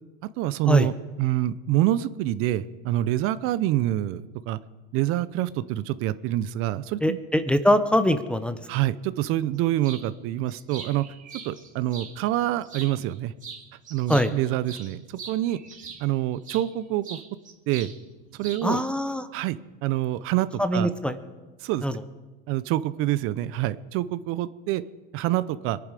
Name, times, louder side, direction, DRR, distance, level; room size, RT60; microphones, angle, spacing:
voice 1, 0.4-0.9 1.2-4.6 4.9-7.2 8.7-11.0 11.4-13.3 13.9-15.6 16.0-17.2 17.7-17.9 18.3-18.8 19.3-20.9 21.6-21.8 22.5-24.8 25.1-25.8, right 14 dB, 45° right, 15 dB, 0.6 m, -26 dB
voice 2, 7.0-8.6 14.1-14.3 18.6-19.3 20.6-21.2 21.8-21.9, equal, 5° left, 11 dB, 0.6 m, -22 dB
sound 1, 9.8-10.1 10.5-12.1 12.6-13.2 13.4-16.7 17.0-18.0 18.2-18.9, right 6 dB, 25° right, 2.4 m, -42 dB
22.5 x 10.5 x 4.9 m, 1.2 s
supercardioid pair, 130°, 29 cm